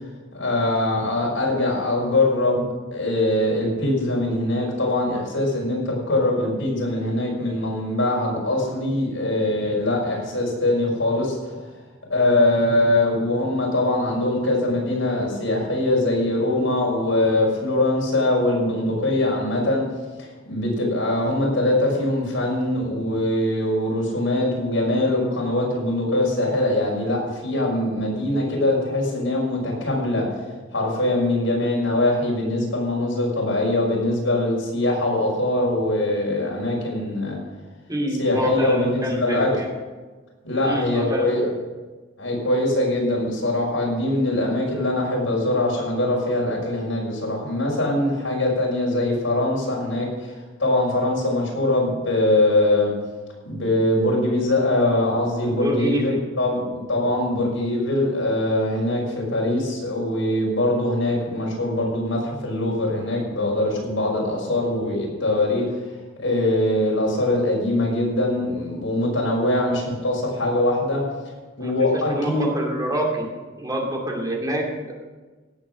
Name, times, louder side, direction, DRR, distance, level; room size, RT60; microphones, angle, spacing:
voice 1, 0.3-11.6 12.1-19.8 20.2-30.3 30.7-37.4 38.2-39.5 40.4-41.5 42.2-50.3 50.6-52.9 53.4-65.6 66.2-71.0 71.6-72.5, left 1 dB, 80° left, -2 dB, 6.1 m, -22 dB
voice 2, 37.9-39.7 40.6-41.5 55.4-56.2 71.6-73.3 73.6-74.9, equal, 20° right, 0 dB, 2.7 m, -26 dB
17.5 x 8.6 x 6.3 m, 1.3 s
head